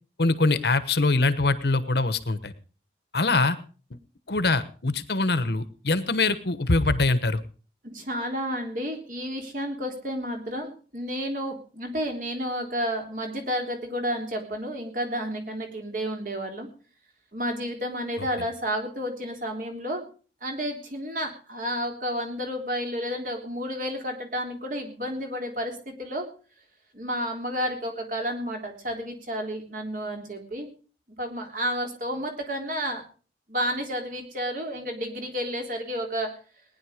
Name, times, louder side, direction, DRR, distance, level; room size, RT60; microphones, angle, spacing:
voice 1, 0.2-2.5 3.1-3.6 4.3-7.4, left 3 dB, 65° left, 13 dB, 1.1 m, -23 dB
voice 2, 7.8-16.7 17.3-20.1 20.4-26.2 26.9-30.7 31.2-33.0 33.5-36.3, equal, 45° right, 3 dB, 3.4 m, -31 dB
19.0 x 10.5 x 5.1 m, 0.40 s
head